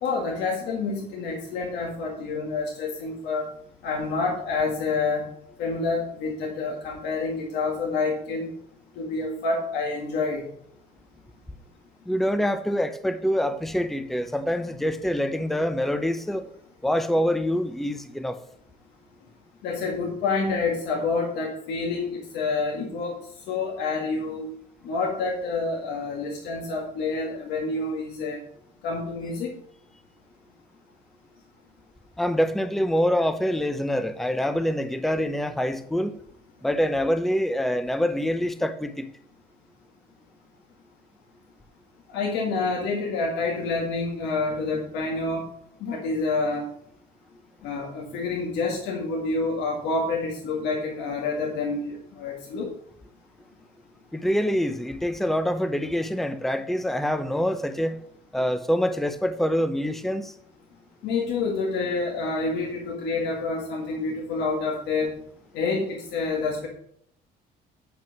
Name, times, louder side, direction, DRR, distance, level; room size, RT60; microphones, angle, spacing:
voice 1, 0.0-3.5 3.8-5.3 5.6-8.5 9.0-10.5 19.6-24.4 24.8-28.4 28.8-29.5 42.1-45.4 45.8-46.7 47.6-52.7 61.0-65.1 65.5-66.7, left 3 dB, 85° left, 2.0 m, -28 dB
voice 2, 12.1-16.5 16.8-18.4 32.2-36.2 36.6-39.1 54.1-58.0 58.3-60.3, equal, ahead, 0.7 m, -25 dB
9.0 x 6.0 x 5.9 m
cardioid pair, 110°, 17 cm